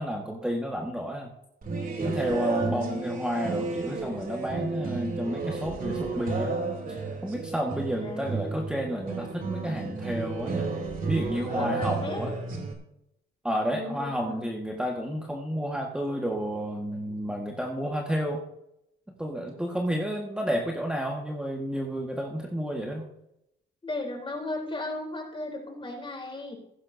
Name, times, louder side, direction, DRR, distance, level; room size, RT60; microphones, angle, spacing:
voice 1, 0.0-1.3 2.0-6.5 6.9-10.7 11.1-12.3 13.4-18.4 19.2-23.1, equal, 5° right, 0 dB, 1.6 m, -31 dB
sound 1, 1.6-12.7, right 4 dB, 45° right, 3.0 m, -32 dB
voice 2, 2.6-3.1 8.0-8.4 11.5-12.2 13.6-14.5 23.8-26.5, left 2 dB, 25° left, 1 dB, 3.7 m, -36 dB
15.5 x 12.5 x 2.7 m, 0.81 s
cardioid pair, 90°, 20 cm